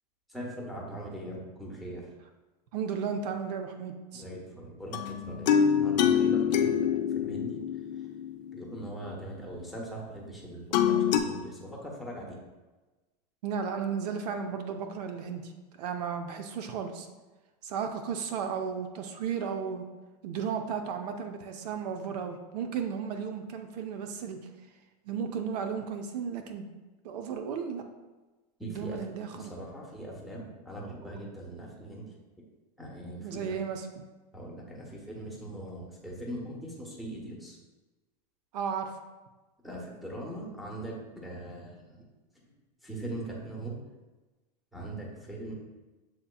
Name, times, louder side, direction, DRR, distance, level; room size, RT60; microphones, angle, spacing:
voice 1, 0.3-2.1 4.1-7.6 8.5-12.4 28.6-29.0 29.3-32.0 32.8-33.6 34.3-37.6 39.6-42.0 42.8-43.9 44.7-45.5, right 1 dB, ahead, -2 dB, 0.9 m, -41 dB
voice 2, 2.7-4.2 7.5-7.6 13.4-15.5 15.8-17.1 17.6-19.8 20.2-24.4 25.1-26.7 27.0-27.8 28.6-29.5 31.0-31.1 33.2-34.0 38.5-38.9, right 6 dB, 70° right, 6 dB, 0.5 m, -34 dB
sound 1, 4.9-8.9 10.7-11.2, left 8 dB, 85° left, 0.5 m, -26 dB
7.7 x 2.8 x 2.3 m, 1.2 s
supercardioid pair, 125°, 21 cm